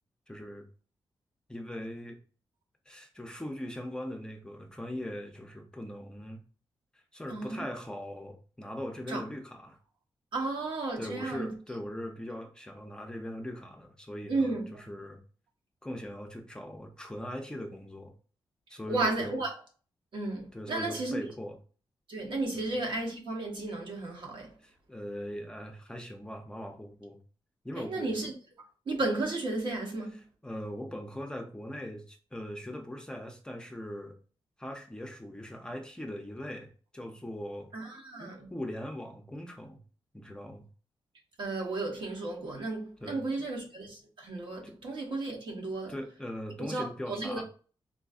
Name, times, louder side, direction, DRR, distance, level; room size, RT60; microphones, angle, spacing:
voice 1, 0.3-0.6 1.5-2.2 2.9-6.4 6.9-9.8 11.0-15.2 15.8-18.1 18.7-19.4 20.5-21.6 22.5-22.7 24.6-27.2 27.6-28.1 30.4-34.1 34.6-37.7 38.2-39.8 40.1-40.6 43.0-43.2 44.6-44.8 45.9-47.4, left 1 dB, 10° left, 0.4 m, -40 dB
voice 2, 7.3-7.7 9.1-9.2 10.3-11.5 14.3-14.7 18.9-19.5 20.1-21.2 22.1-24.5 27.9-28.3 28.9-30.1 37.7-38.5 41.4-45.9 46.6-47.4, right 2 dB, 70° right, 1.0 m, -33 dB
3.9 x 2.5 x 2.4 m
wide cardioid pair, 155°, 9 cm